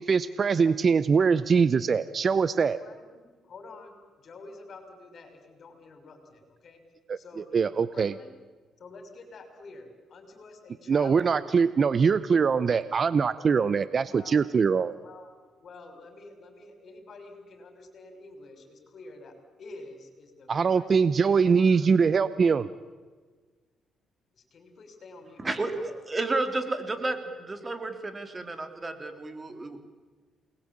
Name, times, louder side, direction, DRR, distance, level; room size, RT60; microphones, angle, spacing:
voice 1, 0.0-2.8 7.1-7.2 7.5-8.1 10.9-14.9 20.5-22.7, right 5 dB, 45° right, 15 dB, 0.8 m, -23 dB
voice 2, 2.5-6.8 7.2-8.3 8.8-12.0 13.3-13.7 14.1-14.4 15.0-15.3 15.6-19.3 19.6-21.9 24.3-25.9, left 3 dB, 55° left, 7 dB, 6.3 m, -49 dB
voice 3, 25.4-29.8, right 2 dB, 25° right, 7 dB, 3.2 m, -32 dB
28.5 x 21.0 x 8.8 m, 1.4 s
cardioid pair, 90°, 0 cm